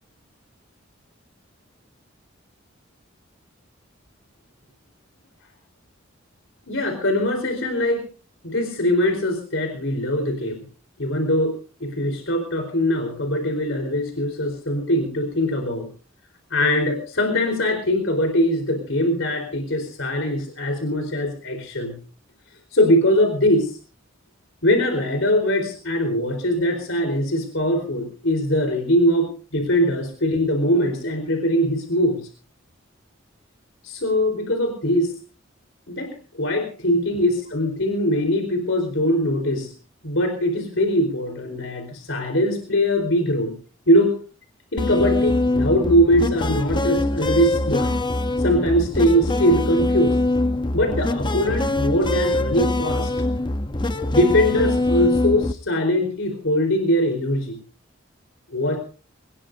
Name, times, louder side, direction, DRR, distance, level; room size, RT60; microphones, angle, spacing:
voice 1, 6.7-8.0 8.4-10.6 11.0-11.5 11.8-15.9 16.5-22.0 22.7-23.8 24.6-32.3 33.8-35.1 35.9-39.7 40.0-43.6 43.9-44.2 44.7-47.9 48.4-50.2 50.7-53.1 54.1-57.6 58.5-58.8, equal, 70° left, 4 dB, 4.2 m, -21 dB
sound 1, 44.8-55.5, left 2 dB, 25° left, 0.9 m, -23 dB
23.5 x 20.5 x 2.7 m, 0.38 s
head